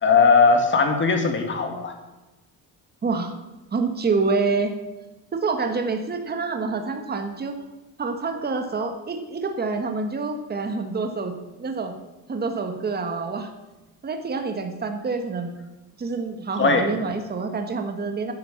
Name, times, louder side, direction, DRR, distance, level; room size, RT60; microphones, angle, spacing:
voice 1, 0.0-2.0 16.6-16.9, left 4 dB, 30° left, 5 dB, 1.9 m, -19 dB
voice 2, 3.0-3.3 3.7-4.8 5.3-7.5 8.0-11.3 11.6-11.9 12.3-13.5 14.0-15.5 16.0-18.3, right 4 dB, 25° right, 6 dB, 1.4 m, -27 dB
11.0 x 10.5 x 7.1 m, 1.1 s
cardioid pair, 165°, 38 cm